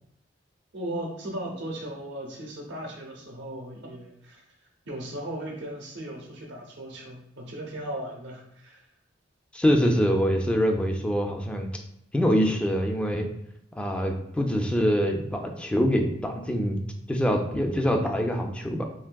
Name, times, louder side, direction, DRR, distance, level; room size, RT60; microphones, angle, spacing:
voice 1, 0.7-4.4 4.9-8.8, right 1 dB, 70° right, 0 dB, 0.7 m, -37 dB
voice 2, 9.5-11.8 12.1-13.3 13.8-16.8 17.1-18.9, equal, 5° left, 3 dB, 0.3 m, -24 dB
3.5 x 2.5 x 2.2 m, 0.75 s
head